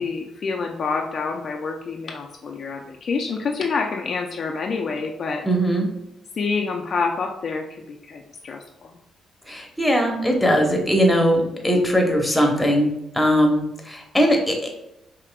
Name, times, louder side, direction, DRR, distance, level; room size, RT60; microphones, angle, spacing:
voice 1, 0.0-5.4 6.4-9.0 12.4-12.5, left 4 dB, 50° left, 2 dB, 0.4 m, -27 dB
voice 2, 5.4-5.9 9.5-14.7, equal, 5° left, 1 dB, 0.9 m, -20 dB
4.8 x 2.8 x 2.3 m, 0.85 s
cardioid pair, 90°, 0 cm